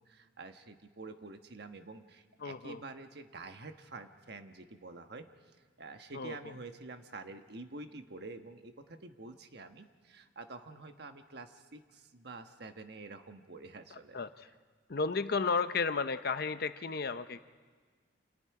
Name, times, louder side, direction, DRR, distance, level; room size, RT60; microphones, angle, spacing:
voice 1, 0.0-5.3 5.8-14.2, right 3 dB, 60° right, 7 dB, 1.3 m, -48 dB
voice 2, 2.4-2.8 6.1-6.5 13.9-14.5 14.9-17.4, left 4 dB, 55° left, 11 dB, 0.7 m, -33 dB
29.0 x 27.5 x 4.8 m, 1.5 s
head